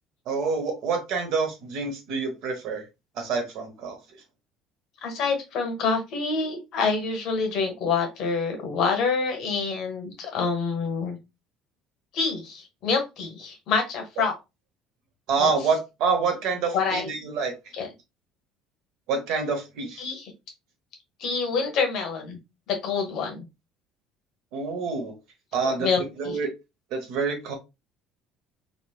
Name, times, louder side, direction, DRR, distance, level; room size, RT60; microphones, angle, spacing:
voice 1, 0.3-2.8 3.2-4.0 15.3-17.5 19.1-20.1 24.5-25.1 25.5-26.5 26.9-27.5, right 4 dB, 65° right, 5 dB, 1.0 m, -27 dB
voice 2, 5.0-11.2 12.1-14.3 15.4-15.5 16.7-17.1 17.7-17.9 20.0-20.3 21.2-22.4 22.7-23.4 25.6-26.4, left 5 dB, 55° left, 4 dB, 0.9 m, -27 dB
3.1 x 2.5 x 2.3 m, 0.24 s
cardioid pair, 145°, 0 cm